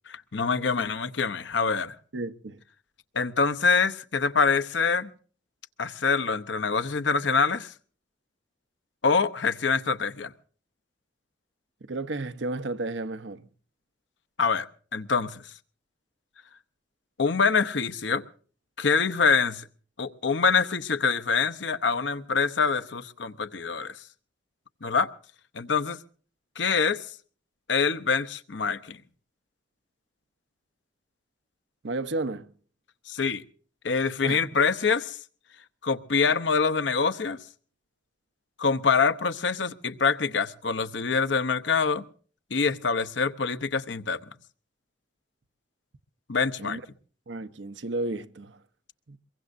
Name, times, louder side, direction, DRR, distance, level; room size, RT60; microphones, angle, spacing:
voice 1, 0.1-2.0 3.1-5.1 5.8-7.7 9.0-10.3 14.4-14.7 14.9-15.4 17.2-18.2 18.8-19.6 20.0-24.0 24.8-25.1 25.5-26.0 26.6-27.0 27.7-29.0 33.1-33.4 33.8-35.2 35.8-37.4 38.6-42.0 42.5-44.2 46.3-46.8, left 5 dB, 80° left, 0.9 m, -25 dB
voice 2, 2.1-2.6 11.9-13.5 31.8-32.5 34.2-34.4 46.6-46.8 47.3-48.6 49.1-49.2, right 2 dB, 85° right, 0.9 m, -32 dB
23.5 x 22.5 x 2.6 m
head